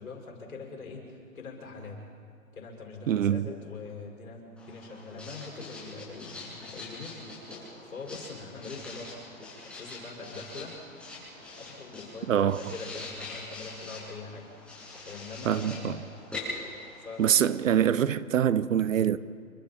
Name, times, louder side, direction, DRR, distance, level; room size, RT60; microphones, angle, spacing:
voice 1, 0.0-2.0 2.5-7.1 7.5-10.8 11.6-16.2 17.0-17.6, left 4 dB, 75° left, 6.7 m, -43 dB
voice 2, 3.1-3.5 12.3-12.8 15.4-16.0 17.2-19.2, right 9 dB, 65° right, 1.0 m, -25 dB
Writing, 4.6-17.8, left 2 dB, 5° left, 7.6 m, -44 dB
28.5 x 24.0 x 4.5 m
hypercardioid pair, 140°, 42 cm